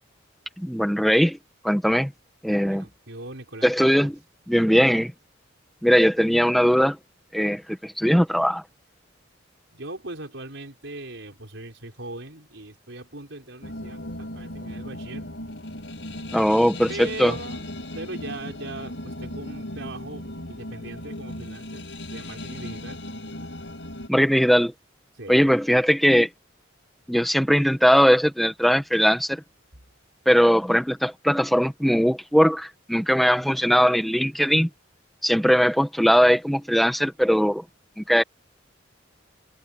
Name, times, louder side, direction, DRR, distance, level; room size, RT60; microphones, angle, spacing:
voice 1, 0.6-1.4 1.6-2.1 2.4-2.8 3.6-4.1 4.5-5.1 5.8-7.0 7.3-8.6 16.3-17.3 24.1-24.7 25.3-26.3 27.1-29.4 30.2-34.7 35.2-37.6 38.0-38.2, equal, ahead, 1.3 m, -20 dB
voice 2, 2.6-4.1 9.7-15.3 16.9-17.6 17.9-21.8 22.1-23.0 25.2-25.4, right 2 dB, 70° right, 5.2 m, -39 dB
sound 1, 13.6-24.1, left 1 dB, 70° left, 5.5 m, -37 dB
head